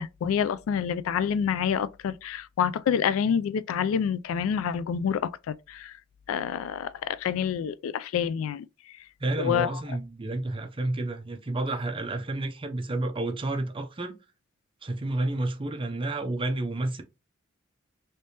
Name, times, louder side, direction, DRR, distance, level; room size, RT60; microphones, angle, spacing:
voice 1, 0.0-5.9 6.3-8.7 9.4-9.7, left 8 dB, 85° left, 0.3 m, -27 dB
voice 2, 9.2-14.2 14.8-17.0, right 2 dB, 25° right, 0.5 m, -30 dB
3.2 x 3.2 x 2.8 m
head